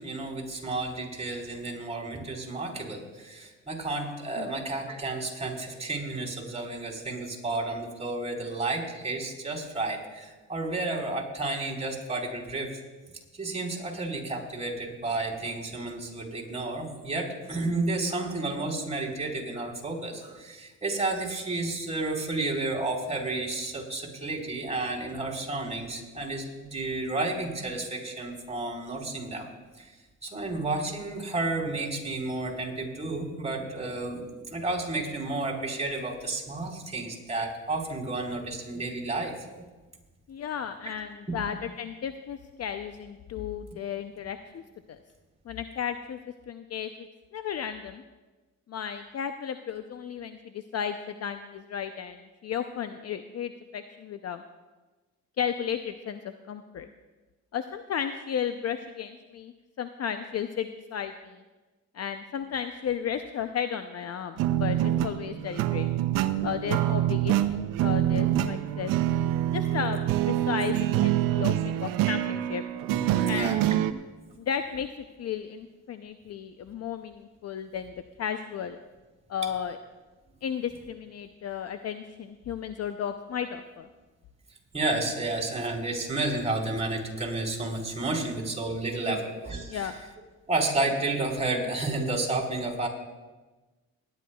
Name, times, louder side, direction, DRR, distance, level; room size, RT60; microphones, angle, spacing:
voice 1, 0.0-12.8 13.4-29.5 29.8-29.9 30.2-39.4 72.9-73.6 84.7-89.9 90.5-92.9, right 2 dB, 20° right, -3 dB, 4.2 m, -31 dB
voice 2, 40.3-44.6 44.9-45.0 45.5-46.2 46.5-46.9 47.3-48.0 48.7-54.4 55.4-56.9 57.5-61.4 61.9-65.9 66.4-68.9 69.5-70.0 70.3-72.6 73.3-73.5 74.4-74.9 75.2-78.8 79.3-79.8 80.4-83.9 89.0-89.2 89.7-89.9, left 8 dB, 50° left, 8 dB, 0.6 m, -34 dB
sound 1, 64.4-73.9, right 12 dB, 90° right, 0.6 m, -26 dB
20.0 x 11.0 x 2.3 m, 1.2 s
supercardioid pair, 70°, 32 cm